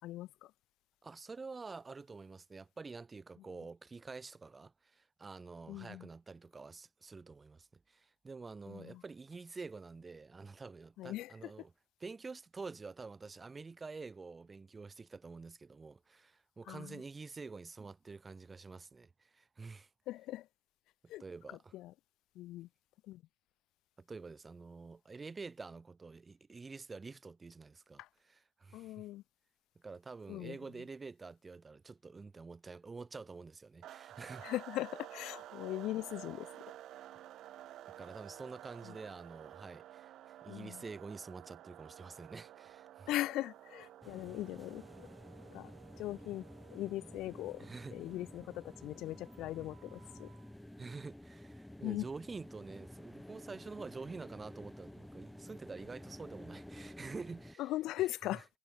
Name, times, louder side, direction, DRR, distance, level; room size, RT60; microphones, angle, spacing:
voice 1, 0.0-0.5 5.7-6.1 8.7-9.0 11.0-11.5 16.7-17.0 20.1-20.5 21.1-21.2 21.5-21.9 22.3-22.7 23.1-23.2 28.0-28.1 28.7-29.2 30.3-30.6 34.4-36.5 38.8-38.9 40.5-40.8 43.1-45.1 45.5-45.7 46.0-47.6 47.9-50.3 51.8-52.1 57.6-58.5, left 16 dB, 80° left, 2.5 m, -40 dB
voice 2, 1.0-11.7 12.0-19.9 21.2-21.7 24.0-29.1 29.7-34.5 38.0-43.1 47.6-48.0 50.8-57.6 58.3-58.4, right 4 dB, 25° right, 5.0 m, -48 dB
sound 1, 33.8-50.5, right 13 dB, 70° right, 4.1 m, -53 dB
sound 2, 44.0-57.5, left 1 dB, 5° left, 2.1 m, -52 dB
cardioid pair, 105°, 0 cm